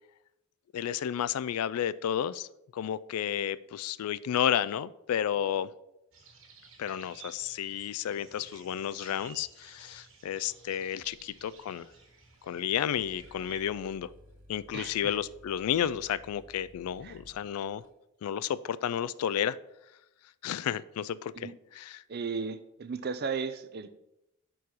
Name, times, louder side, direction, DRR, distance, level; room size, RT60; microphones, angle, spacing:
voice 1, 0.7-2.5 2.7-5.7 6.8-11.9 12.4-14.1 14.5-17.8 18.2-19.6 20.4-22.0, left 9 dB, 80° left, 18 dB, 0.3 m, -32 dB
sound 1, 6.1-13.6, right 4 dB, 60° right, 1.7 m, -54 dB
sound 2, 11.0-12.0 12.3-12.4 12.6-17.9, equal, 85° right, 1.7 m, -56 dB
voice 2, 14.7-15.2 17.0-17.2 21.3-21.5 22.1-23.9, right 5 dB, 45° right, 11 dB, 0.5 m, -35 dB
6.3 x 4.6 x 5.4 m, 0.87 s
head